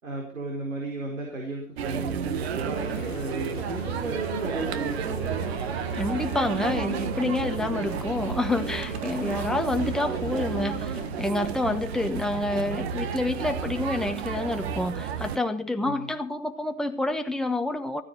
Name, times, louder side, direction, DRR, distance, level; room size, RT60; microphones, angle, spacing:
voice 1, 0.0-5.5 15.8-16.2, right 2 dB, 90° right, 0 dB, 4.5 m, -34 dB
sound 1, 0.9-2.2 2.5-12.8 13.7-13.8 14.5-14.6 15.2-15.3, left 12 dB, 40° left, 1.4 m, -43 dB
sound 2, 1.8-15.4, right 8 dB, 55° right, 1.5 m, -31 dB
voice 2, 5.9-18.0, left 2 dB, ahead, 5 dB, 1.1 m, -28 dB
15.0 x 9.5 x 5.6 m, 0.40 s
hypercardioid pair, 130°, 38 cm